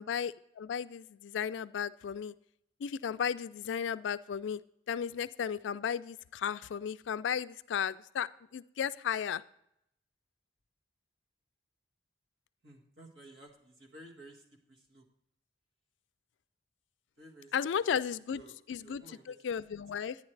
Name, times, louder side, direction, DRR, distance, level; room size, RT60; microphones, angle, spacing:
voice 1, 0.0-2.3 2.8-4.6 4.9-9.4 17.5-18.4 18.7-20.2, left 7 dB, 75° left, 14 dB, 0.3 m, -34 dB
voice 2, 12.6-14.4 14.7-15.0 17.2-17.5 18.3-18.6 18.8-19.3, right 1 dB, 70° right, -1 dB, 1.9 m, -54 dB
10.5 x 9.6 x 3.2 m, 0.77 s
head